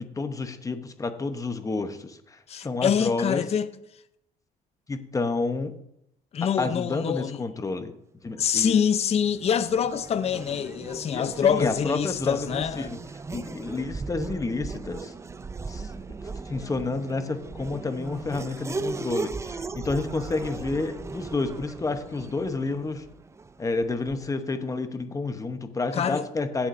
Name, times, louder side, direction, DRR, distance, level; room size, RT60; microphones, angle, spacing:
voice 1, 0.0-3.4 4.9-5.8 6.4-7.9 8.2-8.8 11.1-13.0 13.3-15.1 15.7-15.9 16.2-23.0 23.6-26.7, left 3 dB, 20° left, 0.9 m, -30 dB
voice 2, 2.5-3.7 6.3-7.4 8.4-12.9 25.9-26.2, left 8 dB, 40° left, 0.6 m, -25 dB
Race car auto racing / Accelerating revving vroom, 8.8-24.4, right 4 dB, 15° right, 0.4 m, -38 dB
17.5 x 7.2 x 2.6 m
cardioid pair, 110°, 17 cm